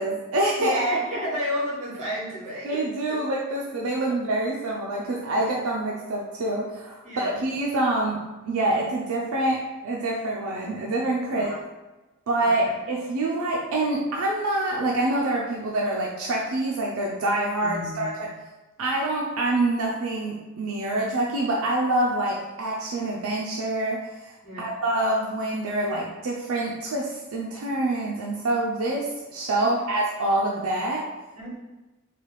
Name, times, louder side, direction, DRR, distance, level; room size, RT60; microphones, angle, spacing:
voice 1, 0.0-0.8 2.6-11.5 12.3-18.3 18.8-24.1 24.6-31.0, right 2 dB, 65° right, -2 dB, 0.4 m, -26 dB
voice 2, 0.6-2.8 3.1-3.2 7.0-7.4 11.3-11.6 12.4-12.7 17.6-18.3 24.4-24.7 29.6-29.8 31.4-31.6, equal, 35° right, -8 dB, 1.3 m, -31 dB
3.2 x 2.3 x 3.0 m, 1.1 s
head